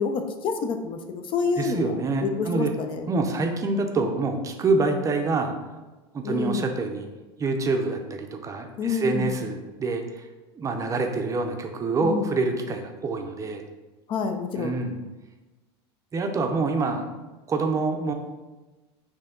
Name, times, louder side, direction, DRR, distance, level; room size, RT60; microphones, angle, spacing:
voice 1, 0.0-2.0 2.2-3.0 6.2-6.7 8.8-9.3 12.0-12.3 14.1-14.8, left 5 dB, 40° left, 7 dB, 0.4 m, -28 dB
voice 2, 1.6-2.7 3.1-5.5 6.1-7.1 7.4-10.3 10.5-13.6 14.6-15.0 16.1-17.1 17.5-18.1, right 3 dB, 25° right, 4 dB, 0.5 m, -26 dB
4.5 x 2.8 x 3.6 m, 1.2 s
supercardioid pair, 110°, 14 cm